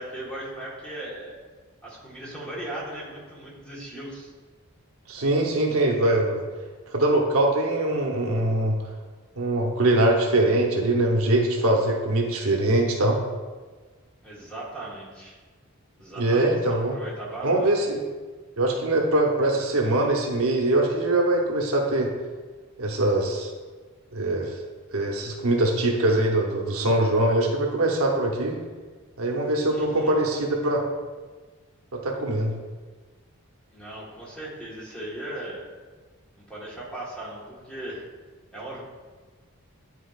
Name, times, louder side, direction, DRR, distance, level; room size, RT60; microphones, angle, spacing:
voice 1, 0.0-1.3 1.8-4.3 14.2-15.4 16.0-17.7 29.7-30.2 33.7-35.6 36.5-38.0 38.5-38.8, right 1 dB, 5° left, -6 dB, 1.3 m, -38 dB
voice 2, 5.1-6.4 6.9-8.8 9.4-13.2 16.2-17.0 17.4-18.0 18.6-22.1 22.8-23.5 24.1-24.5 24.9-28.6 29.2-30.8 31.9-32.5, right 1 dB, 75° right, 0 dB, 0.9 m, -22 dB
10.5 x 4.4 x 2.4 m, 1.4 s
head